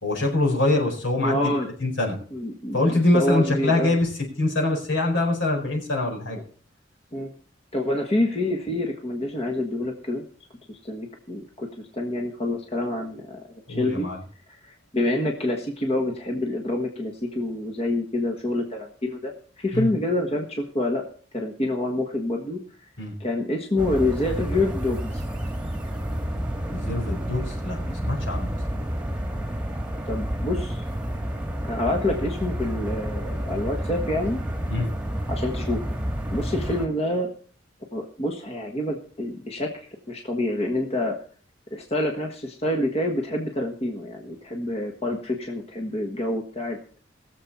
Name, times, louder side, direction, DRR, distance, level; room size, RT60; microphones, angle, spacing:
voice 1, 0.0-1.4 1.8-2.2 2.7-4.1 4.4-6.4 13.7-14.2 19.7-19.9 23.0-23.2 26.7-28.5 34.7-34.9, left 2 dB, 75° left, 1 dB, 4.6 m, -24 dB
voice 2, 1.2-1.7 2.3-3.9 7.1-7.3 7.7-10.2 10.7-13.4 13.8-14.1 14.5-21.1 21.3-22.6 23.2-25.2 30.1-30.8 31.6-34.4 35.3-35.8 36.3-37.3 37.9-39.7 40.1-41.2 41.7-46.8, left 1 dB, 30° left, 2 dB, 1.5 m, -27 dB
sound 1, 23.8-36.9, equal, 5° right, 1.6 m, -30 dB
20.5 x 7.3 x 4.3 m, 0.43 s
head